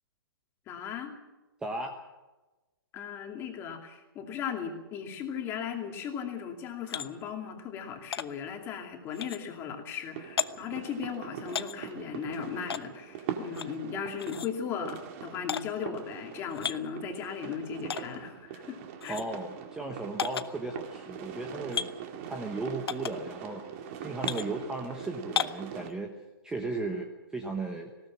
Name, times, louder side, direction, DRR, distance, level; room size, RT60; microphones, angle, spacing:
voice 1, 0.7-1.1 2.9-19.2, left 7 dB, 20° left, 3 dB, 2.6 m, -37 dB
voice 2, 1.6-1.9 19.1-22.0 22.2-26.1 26.4-27.9, right 2 dB, 5° right, 3 dB, 1.1 m, -36 dB
sound 1, 6.9-7.1 8.1-8.3 9.1-9.4 10.4-10.5 11.5-11.8 12.7-12.8 13.5-13.7 14.2-14.5 15.5-15.6 16.5-16.8 17.9-18.0 19.0-19.2 20.2-20.5 21.7-21.9 22.9-23.1 24.2-24.5 25.4-25.6, left 7 dB, 90° left, 1.0 m, -32 dB
sound 2, 10.1-25.9, right 8 dB, 35° right, 2.1 m, -42 dB
19.5 x 18.0 x 7.5 m, 1.1 s
hypercardioid pair, 160°, 13 cm